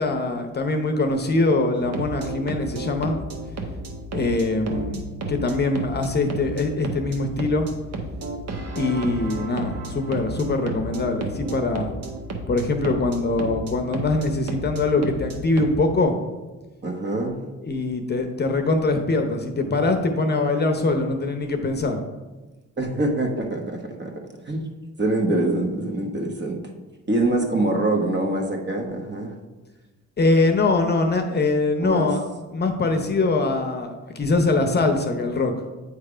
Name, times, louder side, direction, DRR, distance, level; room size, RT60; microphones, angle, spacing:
voice 1, 0.0-3.2 4.1-7.7 8.7-11.9 12.5-16.2 17.6-22.0 30.2-32.2 32.5-35.5, left 3 dB, 35° left, 5 dB, 0.7 m, -23 dB
sound 1, 1.7-15.8, right 2 dB, 55° right, 1.1 m, -33 dB
voice 2, 16.8-17.4 22.8-24.1 24.4-24.6 25.0-26.6 27.1-29.3 31.8-32.1, right 2 dB, 35° right, 2 dB, 1.2 m, -24 dB
8.2 x 3.3 x 4.9 m, 1.2 s
cardioid pair, 90°, 30 cm